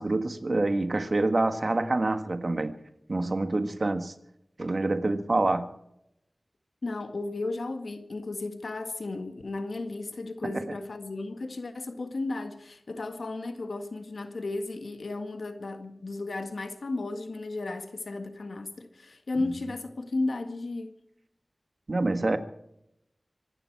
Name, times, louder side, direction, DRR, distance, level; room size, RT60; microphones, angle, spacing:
voice 1, 0.0-2.8 3.1-4.1 4.6-5.7 21.9-22.4, right 2 dB, 60° right, 1.6 m, -26 dB
voice 2, 6.8-20.9, left 2 dB, 90° left, 1.8 m, -34 dB
25.0 x 12.0 x 4.7 m
wide cardioid pair, 50°, 0 cm